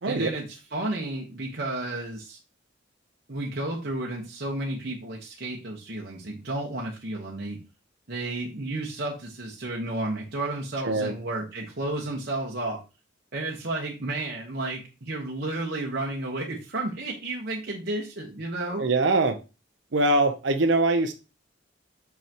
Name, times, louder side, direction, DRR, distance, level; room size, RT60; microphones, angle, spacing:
voice 1, 0.1-0.4 0.7-2.4 3.3-7.6 8.1-12.8 13.3-18.9, right 2 dB, 55° right, -2 dB, 1.1 m, -32 dB
voice 2, 18.8-19.4 19.9-21.1, right 2 dB, 70° right, 6 dB, 0.7 m, -22 dB
6.0 x 5.6 x 2.9 m, 0.29 s
head